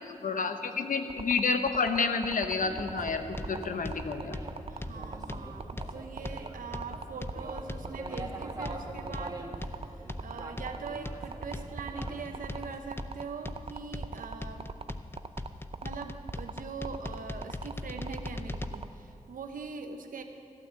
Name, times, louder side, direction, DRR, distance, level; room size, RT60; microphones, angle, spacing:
voice 1, 0.0-4.4, left 4 dB, 75° left, 7 dB, 1.0 m, -30 dB
sound 1, 1.1-18.9, right 5 dB, 45° right, 0.5 m, -40 dB
sound 2, 2.6-12.8, right 2 dB, 30° right, 1.7 m, -44 dB
sound 3, 3.4-18.7, left 2 dB, 15° left, 0.6 m, -40 dB
voice 2, 4.7-14.7 15.8-20.2, right 5 dB, 90° right, 6 dB, 1.0 m, -42 dB
14.5 x 9.3 x 7.5 m, 2.6 s
cardioid pair, 55°, 14 cm